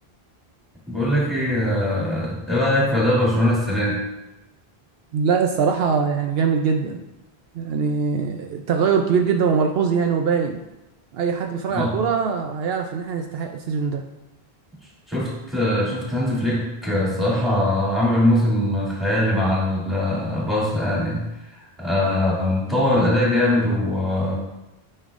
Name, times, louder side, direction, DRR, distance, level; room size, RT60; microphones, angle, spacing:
voice 1, 0.9-4.0 11.7-11.9 15.1-24.4, left 1 dB, ahead, -7 dB, 2.3 m, -21 dB
voice 2, 5.1-7.0 7.5-10.6 11.1-14.0, right 6 dB, 75° right, 4 dB, 0.8 m, -22 dB
9.6 x 5.5 x 2.5 m, 0.97 s
omnidirectional pair, 1.0 m